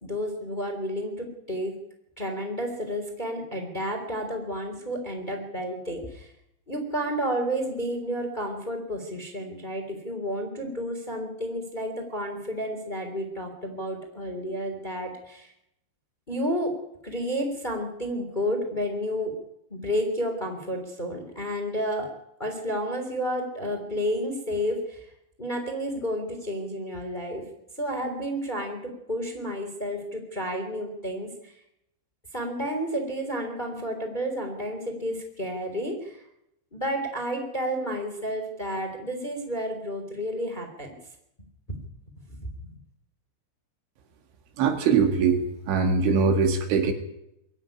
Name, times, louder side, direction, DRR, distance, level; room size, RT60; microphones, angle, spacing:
voice 1, 0.0-1.7 2.2-6.3 6.7-15.5 16.3-16.7 17.0-19.4 19.7-22.1 22.4-25.1 25.4-27.4 27.8-28.8 29.1-31.5 32.3-36.2 36.7-40.9 41.7-41.8 42.3-42.5, equal, 10° left, 4 dB, 2.7 m, -31 dB
voice 2, 44.6-46.9, right 5 dB, 75° right, 6 dB, 4.6 m, -22 dB
22.0 x 14.0 x 9.9 m, 0.81 s
omnidirectional pair, 5.5 m